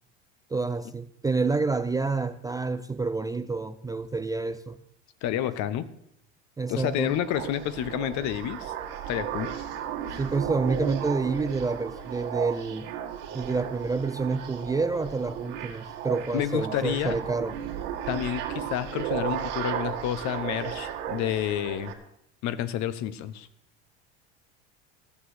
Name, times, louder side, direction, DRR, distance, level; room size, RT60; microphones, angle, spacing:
voice 1, 0.5-4.8 6.6-7.1 10.2-12.9 13.3-17.6, right 4 dB, 10° right, 11 dB, 0.4 m, -28 dB
voice 2, 5.2-5.9 6.7-8.7 9.1-9.5 16.3-17.2 18.1-21.9 22.4-23.5, left 11 dB, 55° left, 14 dB, 1.0 m, -29 dB
sound 1, 6.7-21.9, right 10 dB, 65° right, 2.0 m, -35 dB
14.5 x 6.2 x 8.0 m, 0.74 s
hypercardioid pair, 90°, 34 cm